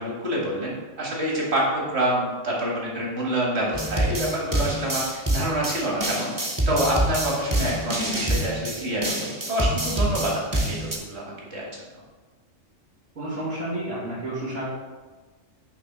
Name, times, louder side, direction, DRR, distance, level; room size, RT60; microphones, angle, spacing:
voice 1, 0.0-6.3 6.7-11.2 11.5-11.7, right 1 dB, 50° right, -4 dB, 1.9 m, -27 dB
sound 1, 3.7-11.0, right 1 dB, 20° right, 0.6 m, -26 dB
voice 2, 13.2-14.7, right 1 dB, 90° right, -12 dB, 2.4 m, -30 dB
5.9 x 3.4 x 5.9 m, 1.3 s
omnidirectional pair, 1.4 m